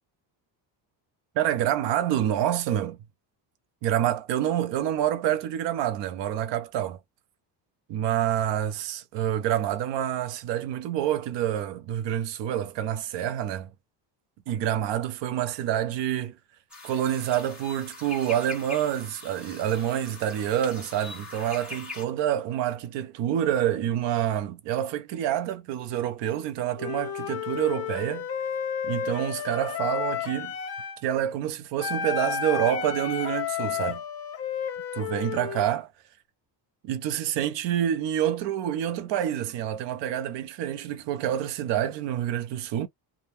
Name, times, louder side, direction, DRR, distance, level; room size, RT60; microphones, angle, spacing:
voice 1, 1.4-3.0 3.8-7.0 7.9-13.7 14.5-16.3 16.8-28.3 28.8-30.5 31.0-34.0 34.9-35.9 36.8-42.9, right 11 dB, 70° right, 0.8 m, -27 dB
sound 1, 16.7-22.0, left 3 dB, ahead, 1.1 m, -42 dB
Wind instrument woodwind instrument, 26.8-31.0 31.8-35.7, left 8 dB, 30° left, 0.7 m, -32 dB
3.5 x 2.2 x 2.7 m
cardioid pair, 170°, 45 cm